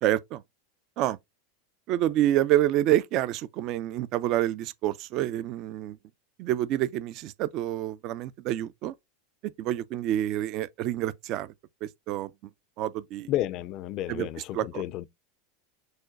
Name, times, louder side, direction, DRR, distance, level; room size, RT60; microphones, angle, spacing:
voice 1, 0.0-0.4 1.0-1.2 1.9-6.0 6.4-8.9 9.6-11.5 11.8-12.3 12.8-13.3 14.1-14.3 14.5-14.8, right 13 dB, 50° right, 0.3 m, -27 dB
voice 2, 13.3-15.1, left 14 dB, 50° left, 0.4 m, -31 dB
6.3 x 2.2 x 2.4 m
hypercardioid pair, 100°, 0 cm